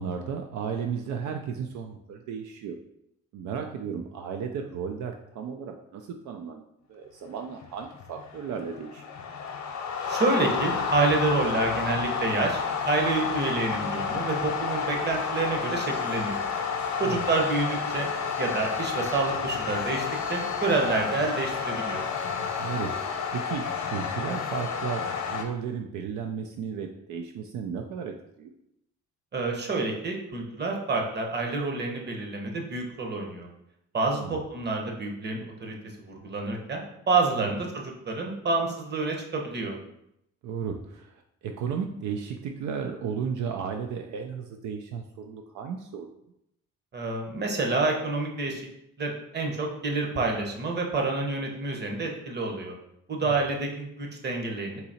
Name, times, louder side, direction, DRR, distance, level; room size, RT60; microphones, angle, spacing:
voice 1, 0.0-2.8 3.3-9.0 17.0-17.2 22.6-28.5 34.1-34.4 37.3-37.5 40.4-46.1 53.2-53.4, right 6 dB, 75° right, 4 dB, 0.5 m, -34 dB
sound 1, 7.5-25.4, left 6 dB, 70° left, 0.8 m, -30 dB
voice 2, 10.1-16.4 17.0-18.1 18.4-22.0 29.3-33.5 33.9-35.7 36.1-39.7 46.9-48.6 49.0-52.7 53.1-54.8, right 3 dB, 35° right, 1 dB, 1.0 m, -28 dB
4.0 x 2.8 x 4.1 m, 0.80 s
cardioid pair, 90°, 30 cm